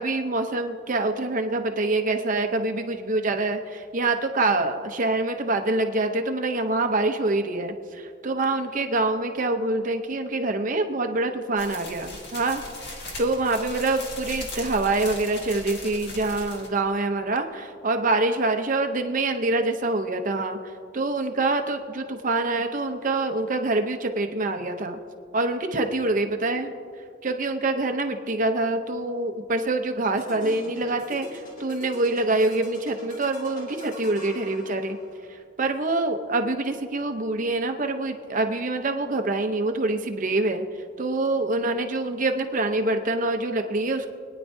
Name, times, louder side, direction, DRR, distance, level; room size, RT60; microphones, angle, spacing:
voice 1, 0.0-12.6 13.2-20.6 20.9-25.0 25.3-26.8 27.2-35.0 35.3-40.7 41.0-44.1, right 2 dB, 40° right, 6 dB, 0.7 m, -25 dB
sound 1, 11.6-16.8, left 1 dB, 55° left, 1.8 m, -38 dB
sound 2, 30.2-35.3, equal, 40° left, 2.0 m, -43 dB
25.5 x 9.7 x 2.7 m, 2.3 s
head